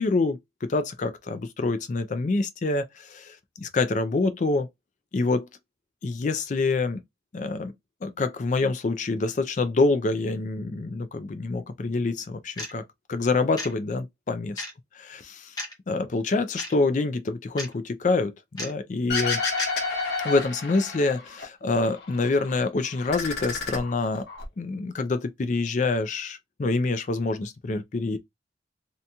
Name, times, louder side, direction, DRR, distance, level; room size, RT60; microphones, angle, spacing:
voice 1, 0.0-4.7 5.1-5.5 6.0-7.0 7.3-7.7 8.0-12.8 13.1-14.6 15.1-15.5 15.9-19.4 20.2-24.3 24.6-28.2, left 3 dB, 40° left, 0.4 m, -26 dB
sound 1, 12.6-12.8 13.6-13.7 14.6-14.7 15.6-15.7 16.6-16.7 17.6-17.7 18.6-18.7 19.6-19.7, left 1 dB, 20° left, 0.8 m, -34 dB
sound 2, 19.1-21.4 21.8-22.6 22.9-24.4, left 4 dB, 65° left, 1.0 m, -30 dB
2.8 x 2.6 x 2.2 m
head